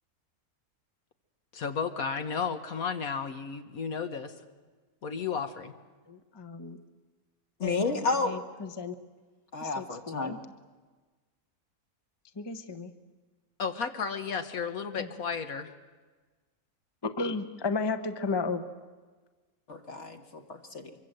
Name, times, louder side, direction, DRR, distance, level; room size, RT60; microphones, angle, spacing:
voice 1, 1.5-4.3 5.0-5.7 13.6-15.7, left 6 dB, 70° left, 7 dB, 1.5 m, -33 dB
voice 2, 6.1-6.8 7.6-7.8 8.2-8.9 9.6-10.4 12.4-12.9 15.0-15.1 17.0-18.7, left 4 dB, 20° left, 8 dB, 0.8 m, -33 dB
voice 3, 7.6-8.4 9.5-10.4 19.7-20.9, left 3 dB, 50° left, 6 dB, 1.8 m, -31 dB
24.0 x 24.0 x 7.9 m, 1.3 s
omnidirectional pair, 1.6 m